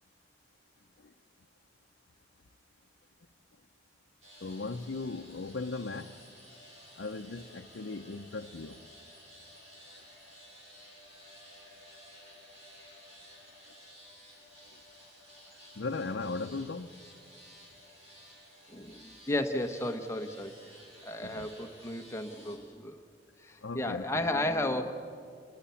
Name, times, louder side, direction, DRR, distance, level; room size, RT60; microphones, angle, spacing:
sound 1, 4.2-22.6, equal, 35° right, 6.3 m, -54 dB
voice 1, 4.4-6.2 7.0-8.8 15.8-16.9 21.2-21.5 23.6-24.3, left 3 dB, 75° left, 0.6 m, -37 dB
voice 2, 18.7-20.5 21.0-23.0 23.4-24.9, left 1 dB, 15° left, 1.2 m, -33 dB
28.0 x 20.0 x 7.1 m
head